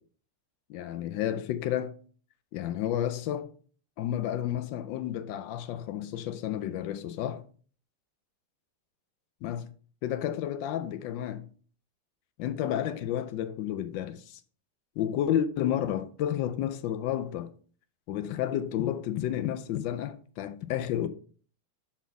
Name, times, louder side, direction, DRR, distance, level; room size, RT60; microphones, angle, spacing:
voice 1, 0.7-1.9 2.5-3.5 4.0-7.4 9.4-9.7 10.0-11.5 12.4-14.4 15.0-17.5 18.1-21.1, left 11 dB, 85° left, 1.3 m, -31 dB
7.1 x 4.2 x 4.0 m
omnidirectional pair, 2.0 m